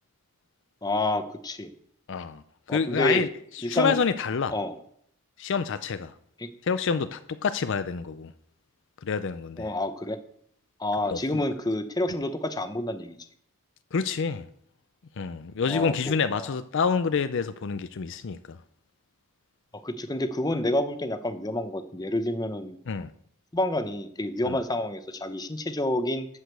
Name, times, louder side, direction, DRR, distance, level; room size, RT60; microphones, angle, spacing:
voice 1, 0.8-1.7 2.7-3.2 3.6-4.0 4.5-4.8 6.4-6.5 9.6-10.2 10.8-13.2 15.6-15.9 16.3-16.5 19.8-22.8 23.5-26.3, left 1 dB, 15° left, 0.7 m, -28 dB
voice 2, 2.1-2.4 2.7-3.3 3.7-4.5 5.4-6.1 6.6-8.3 9.0-9.7 11.1-11.4 13.9-14.4 15.2-18.6 22.9-23.1 24.5-24.6, left 5 dB, 55° left, 0.5 m, -27 dB
12.0 x 5.1 x 8.0 m
head